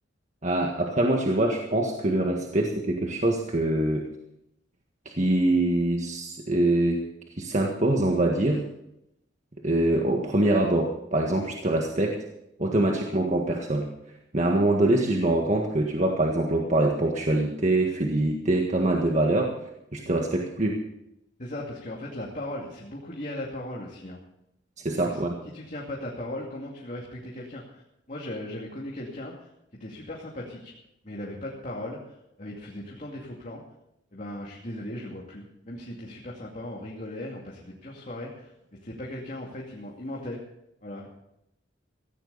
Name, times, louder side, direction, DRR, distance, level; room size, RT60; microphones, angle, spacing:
voice 1, 0.4-4.1 5.0-7.0 7.4-8.6 9.6-12.2 12.6-13.9 14.3-19.5 19.9-20.8 24.8-25.4, right 1 dB, 40° right, 1 dB, 1.7 m, -24 dB
voice 2, 21.4-24.2 24.9-27.8 28.1-29.5 29.8-30.7 31.0-33.6 34.1-38.5 38.8-40.4 40.8-41.1, left 1 dB, 45° left, -3 dB, 2.5 m, -38 dB
16.5 x 16.0 x 4.1 m, 0.82 s
head